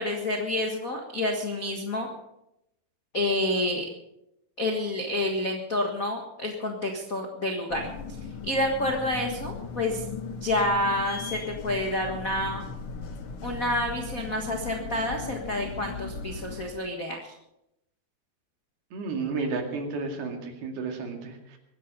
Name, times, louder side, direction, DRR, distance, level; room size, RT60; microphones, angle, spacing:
voice 1, 0.0-2.1 3.1-3.8 4.6-7.9 8.4-10.0 10.3-12.7 13.4-17.3, left 1 dB, 65° left, 1 dB, 0.8 m, -28 dB
sound 1, 7.7-16.7, left 5 dB, 85° left, 1.1 m, -38 dB
voice 2, 18.9-21.6, right 4 dB, 75° right, 3 dB, 4.1 m, -32 dB
23.5 x 10.5 x 5.4 m, 0.85 s
omnidirectional pair, 4.5 m